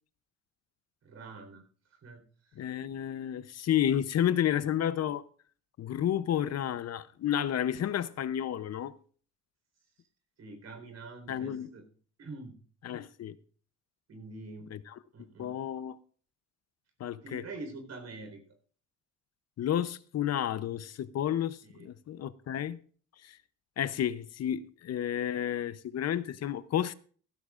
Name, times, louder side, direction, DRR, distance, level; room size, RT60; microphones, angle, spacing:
voice 1, 1.0-1.6 1.9-2.7 10.4-11.8 12.2-12.5 14.1-14.7 15.1-15.5 17.2-18.4 21.6-21.9, right 3 dB, 60° right, 4.2 m, -45 dB
voice 2, 2.6-5.2 5.8-8.9 11.3-11.7 12.8-13.4 14.7-14.9 15.4-16.0 17.0-17.4 19.6-22.8 23.2-23.4 23.8-26.9, left 10 dB, 55° left, 0.7 m, -31 dB
15.5 x 14.5 x 2.5 m
cardioid pair, 90°, 30 cm